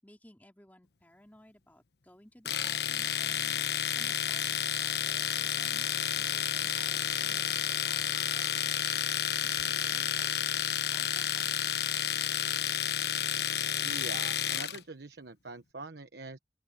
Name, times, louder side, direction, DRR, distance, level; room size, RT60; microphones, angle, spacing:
voice 1, 0.0-5.9 6.2-12.3, left 1 dB, 10° left, 3.9 m, -58 dB
Domestic sounds home sounds, 2.4-14.8, left 10 dB, 65° left, 1.1 m, -31 dB
voice 2, 13.8-16.4, right 3 dB, 70° right, 1.2 m, -44 dB
open air
head